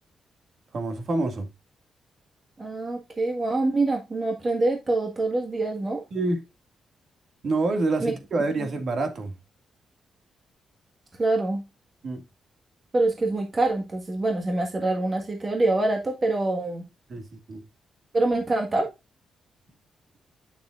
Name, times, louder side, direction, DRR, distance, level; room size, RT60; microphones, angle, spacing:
voice 1, 0.7-1.5 6.1-6.4 7.4-9.3 12.0-12.2 17.1-17.6, right 2 dB, 50° right, 2.1 m, -27 dB
voice 2, 2.6-6.0 8.0-8.1 8.6-8.7 11.2-11.6 12.9-16.8 18.1-18.9, right 2 dB, 30° right, 1.6 m, -25 dB
9.0 x 6.9 x 2.5 m
cardioid pair, 115°, 0 cm